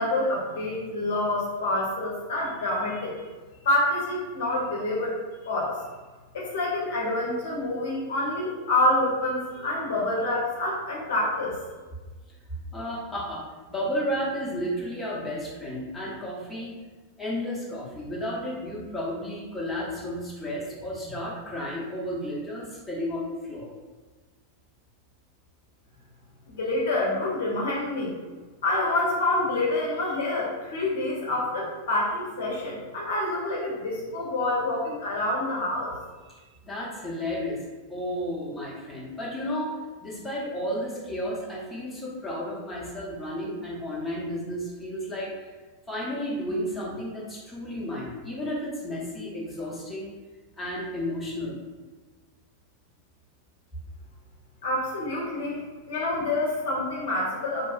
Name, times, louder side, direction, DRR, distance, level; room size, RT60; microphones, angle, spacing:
voice 1, 0.0-3.3 3.6-5.2 5.4-5.8 6.3-11.6 26.5-28.1 28.6-36.0 54.6-55.6 55.9-57.7, left 2 dB, 60° left, -4 dB, 0.6 m, -27 dB
voice 2, 12.7-16.7 17.2-23.7 36.2-37.6 37.9-39.7 40.0-45.5 45.9-50.1 50.6-51.6, equal, 5° left, -7 dB, 0.8 m, -32 dB
2.8 x 2.3 x 2.3 m, 1.3 s
figure-of-eight pair, 90°, 0 cm